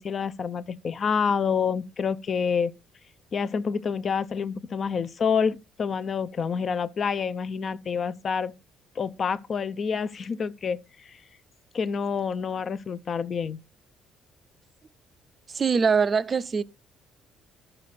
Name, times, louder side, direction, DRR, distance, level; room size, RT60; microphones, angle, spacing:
voice 1, 0.0-2.7 3.3-8.5 9.0-10.8 11.1-11.2 11.7-13.6, left 6 dB, 35° left, 0.5 m, -28 dB
voice 2, 15.5-16.6, right 5 dB, 25° right, 0.5 m, -22 dB
12.5 x 6.6 x 4.2 m
cardioid pair, 160°, 0 cm